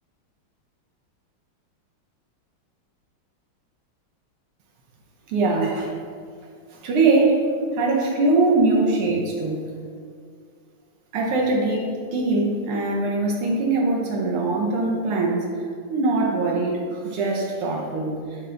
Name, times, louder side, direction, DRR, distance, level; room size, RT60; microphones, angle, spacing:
voice 1, 5.3-5.9 6.7-9.7 11.1-15.5 15.9-18.5, right 3 dB, 90° right, -2 dB, 1.9 m, -22 dB
9.5 x 3.4 x 3.8 m, 2.2 s
omnidirectional pair, 2.4 m